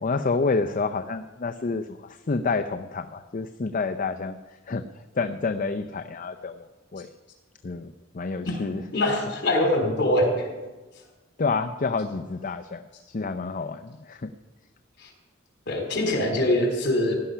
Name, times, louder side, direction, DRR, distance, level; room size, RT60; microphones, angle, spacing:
voice 1, 0.0-4.4 4.7-4.8 5.2-7.1 7.6-8.8 11.4-14.3, left 4 dB, 45° left, 7 dB, 0.6 m, -29 dB
voice 2, 8.9-10.5 15.0-15.1 15.7-17.1, left 1 dB, 65° left, 2 dB, 4.0 m, -23 dB
17.0 x 11.5 x 5.6 m, 1.2 s
head